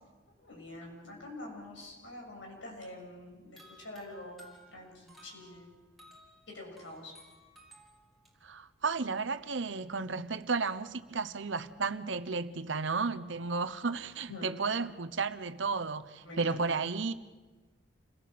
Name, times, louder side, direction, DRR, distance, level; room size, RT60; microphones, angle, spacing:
voice 1, 0.4-4.4 4.7-5.7 6.5-7.1 14.3-14.5 16.2-16.6, left 1 dB, 75° left, 7.0 m, -46 dB
sound 1, 3.6-8.3, equal, ahead, 4.0 m, -58 dB
voice 2, 8.4-17.1, right 4 dB, 75° right, 1.0 m, -33 dB
28.5 x 17.5 x 7.7 m
head